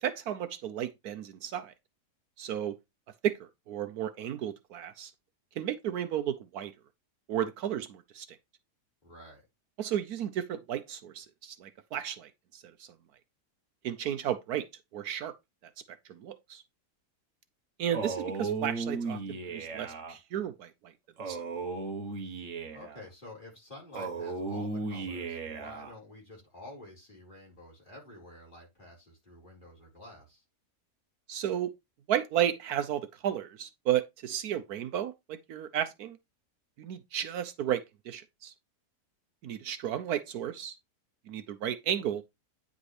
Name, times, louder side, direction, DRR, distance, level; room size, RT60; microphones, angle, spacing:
voice 1, 0.0-1.7 2.4-2.8 3.2-5.1 5.6-6.7 7.3-8.3 9.8-12.9 13.8-14.7 14.9-15.3 16.1-16.6 17.8-19.2 19.5-20.9 21.3-21.4 31.3-31.7 32.1-36.2 36.8-38.5 39.4-40.8 41.3-42.2, right 10 dB, 70° right, 1.1 m, -33 dB
voice 2, 9.0-9.5 22.7-30.4, left 2 dB, 30° left, 4.6 m, -50 dB
Male speech man speaking, 17.9-20.1 21.2-23.0 23.9-25.9, right 4 dB, 50° right, 1.4 m, -35 dB
9.4 x 5.1 x 3.2 m
omnidirectional pair, 1.8 m